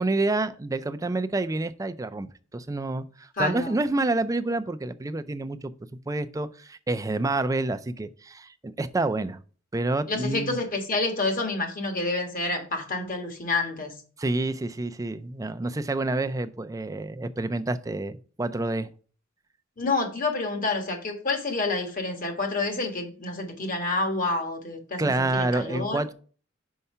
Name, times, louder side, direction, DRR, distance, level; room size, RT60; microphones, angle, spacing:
voice 1, 0.0-9.4 9.7-10.6 14.2-18.9 25.0-26.1, right 2 dB, 15° right, 0.4 m, -28 dB
voice 2, 3.4-3.8 10.1-13.9 19.8-26.0, left 3 dB, 45° left, 1.6 m, -28 dB
5.6 x 4.7 x 5.5 m
head